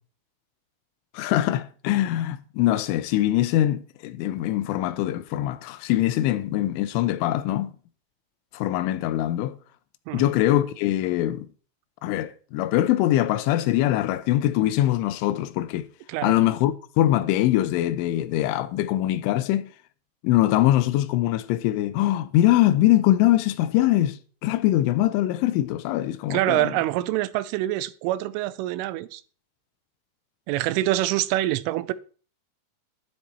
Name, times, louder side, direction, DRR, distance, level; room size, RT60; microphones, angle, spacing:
voice 1, 1.1-7.7 8.5-9.6 10.1-11.5 12.0-15.9 16.2-19.7 20.2-26.7, left 14 dB, 85° left, 3.2 m, -23 dB
voice 2, 26.3-29.2 30.5-31.9, right 15 dB, 90° right, 3.2 m, -25 dB
11.0 x 11.0 x 4.2 m
omnidirectional pair, 5.5 m